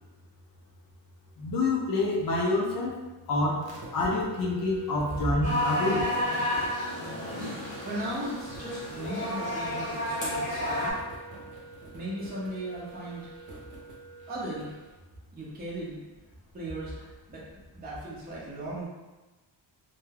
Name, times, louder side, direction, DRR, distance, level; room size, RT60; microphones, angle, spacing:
voice 1, 1.4-3.0 3.3-6.1, left 2 dB, 50° left, -3 dB, 0.5 m, -27 dB
sound 1, 3.6-14.9, right 2 dB, 55° right, 0.7 m, -46 dB
sound 2, 5.4-10.9, left 1 dB, 15° left, 0.8 m, -31 dB
voice 2, 7.8-10.9 11.9-13.3 14.3-14.7 15.3-16.0 16.5-17.4 17.7-18.9, right 1 dB, 20° right, -7 dB, 0.5 m, -37 dB
2.2 x 2.2 x 3.2 m, 1.1 s
wide cardioid pair, 180°, 44 cm